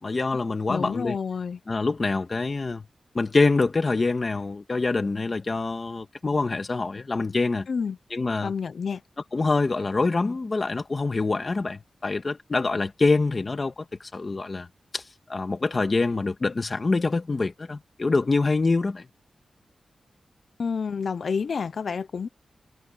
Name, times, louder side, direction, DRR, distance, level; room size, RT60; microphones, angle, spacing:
voice 1, 0.0-1.2 1.7-2.9 3.1-7.7 8.1-8.5 9.3-14.7 14.9-15.0 15.3-19.1, left 3 dB, 30° left, 1.9 m, -25 dB
voice 2, 0.7-1.6 7.7-8.0 8.4-9.0 20.6-22.3, left 5 dB, 55° left, 0.8 m, -29 dB
wide cardioid pair, 170°, 0 cm